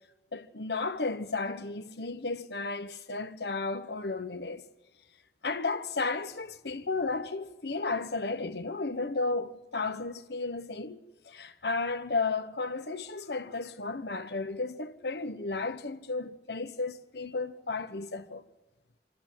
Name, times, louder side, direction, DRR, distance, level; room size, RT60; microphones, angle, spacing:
voice 1, 0.3-4.6 5.4-18.4, left 3 dB, 70° left, 1.2 m, -33 dB
26.0 x 13.5 x 7.7 m
head